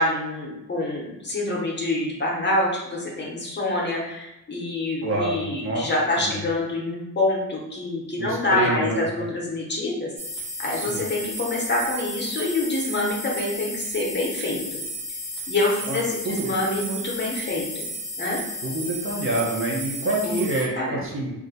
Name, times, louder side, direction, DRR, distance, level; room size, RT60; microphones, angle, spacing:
voice 1, 0.0-10.1 10.6-14.6 15.5-17.9 18.2-18.4 20.2-20.4 20.8-21.0, left 2 dB, 35° left, -3 dB, 0.7 m, -26 dB
voice 2, 5.0-5.9 6.3-6.5 8.2-9.3 10.7-11.0 15.8-16.0 16.2-16.5 18.6-21.3, right 2 dB, 40° right, -3 dB, 0.6 m, -27 dB
sound 1, 10.2-20.6, equal, 70° right, 0.9 m, -33 dB
2.4 x 2.1 x 3.9 m, 0.92 s
wide cardioid pair, 175°, 32 cm